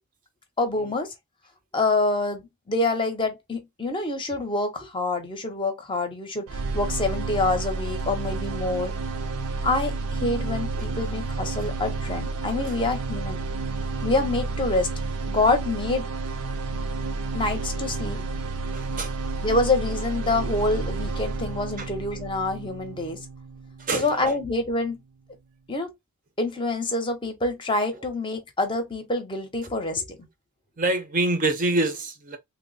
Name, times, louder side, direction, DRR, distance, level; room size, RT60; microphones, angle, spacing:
voice 1, 0.6-1.1 1.7-8.9 9.6-13.4 14.0-14.9 15.3-16.1 17.3-18.2 19.4-23.2 23.9-25.0 25.7-25.9 26.4-30.2, left 2 dB, 20° left, 0.7 m, -26 dB
sound 1, 6.5-24.5, right 3 dB, 80° right, 0.5 m, -31 dB
voice 2, 18.7-19.1 21.8-21.9 23.8-24.2 30.8-32.4, right 2 dB, 35° right, 0.6 m, -26 dB
3.2 x 2.0 x 3.9 m
head